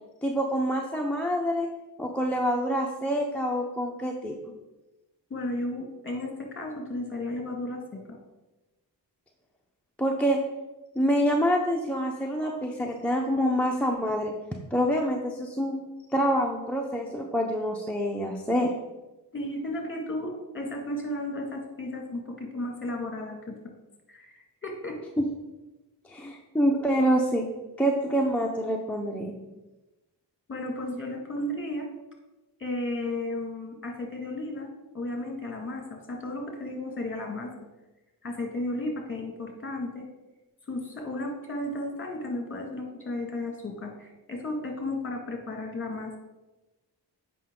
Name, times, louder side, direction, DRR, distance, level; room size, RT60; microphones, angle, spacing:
voice 1, 0.2-1.7 2.0-4.4 10.0-10.4 11.0-14.3 14.7-15.8 16.1-18.7 25.2-25.3 26.1-27.5 27.8-29.3, equal, 5° left, -1 dB, 0.8 m, -26 dB
voice 2, 5.3-8.2 19.3-23.6 24.1-25.0 30.5-31.9 32.6-37.5 38.2-40.1 40.7-46.2, left 1 dB, 30° left, 2 dB, 2.0 m, -34 dB
8.3 x 5.4 x 3.8 m, 1.1 s
cardioid pair, 80°, 42 cm